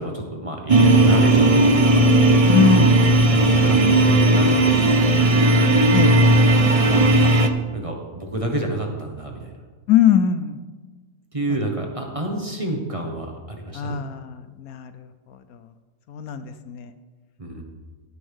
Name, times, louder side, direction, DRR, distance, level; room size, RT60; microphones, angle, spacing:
voice 1, 0.0-2.5 3.3-4.6 4.8-5.5 6.9-7.3 7.7-9.5 11.3-14.0 17.4-17.6, right 1 dB, 20° right, 1 dB, 1.3 m, -29 dB
sound 1, 0.7-7.5, right 2 dB, 40° right, 0.5 m, -15 dB
voice 2, 2.4-2.9 3.2-3.6 5.9-6.2 9.9-10.6 13.7-15.6 16.1-16.9, left 8 dB, 70° left, 11 dB, 1.0 m, -22 dB
16.0 x 8.5 x 3.6 m, 1.4 s
omnidirectional pair, 1.7 m